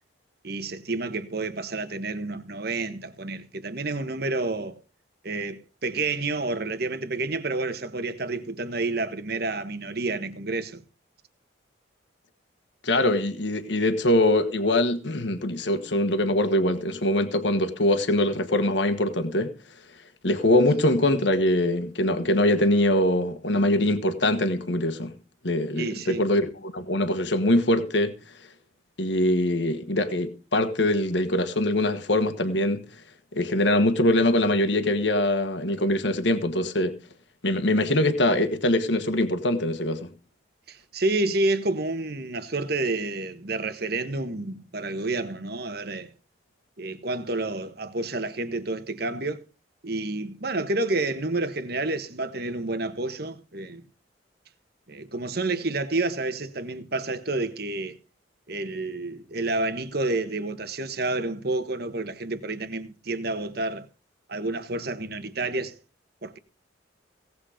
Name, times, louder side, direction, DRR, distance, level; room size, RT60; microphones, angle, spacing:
voice 1, 0.4-4.8 5.2-10.8 25.7-26.2 40.7-46.1 46.8-49.4 49.8-53.8 54.9-58.0 58.5-63.9 64.3-65.8 66.2-66.4, right 2 dB, 55° right, 1.4 m, -29 dB
voice 2, 12.8-19.5 20.2-25.1 25.4-28.1 29.0-32.8 33.3-37.0 37.4-40.1, left 1 dB, 65° left, 1.5 m, -23 dB
17.5 x 8.1 x 5.1 m
head